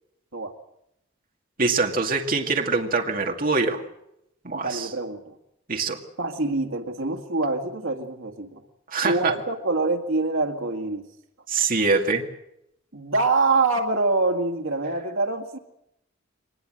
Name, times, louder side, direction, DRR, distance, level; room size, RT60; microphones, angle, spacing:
voice 1, 1.6-3.8 4.4-4.9 5.7-6.0 8.9-9.3 11.5-12.2, right 4 dB, 45° right, 3 dB, 2.2 m, -24 dB
voice 2, 4.6-5.3 6.2-8.6 9.0-11.0 12.9-15.6, right 3 dB, 85° right, 3 dB, 2.0 m, -25 dB
23.5 x 20.0 x 7.8 m, 0.80 s
head